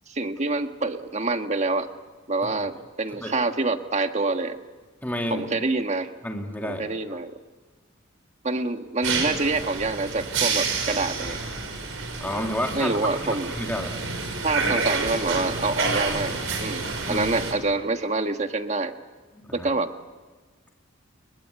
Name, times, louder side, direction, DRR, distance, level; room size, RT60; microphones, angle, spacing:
voice 1, 0.1-1.9 2.3-4.6 5.3-6.1 6.6-7.4 8.4-11.4 12.7-13.5 14.4-18.9 19.5-19.9, right 3 dB, 35° right, 7 dB, 1.5 m, -26 dB
voice 2, 5.0-5.5 6.2-7.2 12.2-14.0 17.1-17.3 19.4-19.7, left 1 dB, 10° left, 2 dB, 2.3 m, -31 dB
sound 1, 9.0-17.5, right 4 dB, 80° right, 5.3 m, -29 dB
30.0 x 21.5 x 8.2 m, 1.3 s
head